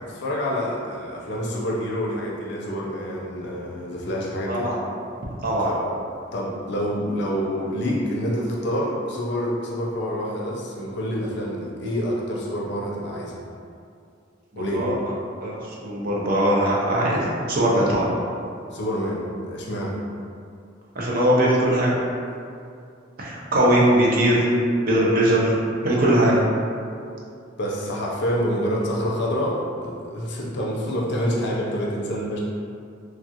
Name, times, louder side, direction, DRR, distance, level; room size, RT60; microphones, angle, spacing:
voice 1, 0.0-4.7 5.6-5.8 6.3-13.4 14.6-14.9 18.7-20.0 27.6-32.4, equal, 60° left, -3 dB, 0.5 m, -27 dB
voice 2, 14.5-14.9 15.4-15.5 15.8-18.1 21.0-21.9 23.2-24.5 24.8-25.5 25.8-26.4, right 1 dB, 50° right, -5 dB, 0.6 m, -20 dB
3.3 x 2.4 x 2.8 m, 2.4 s
head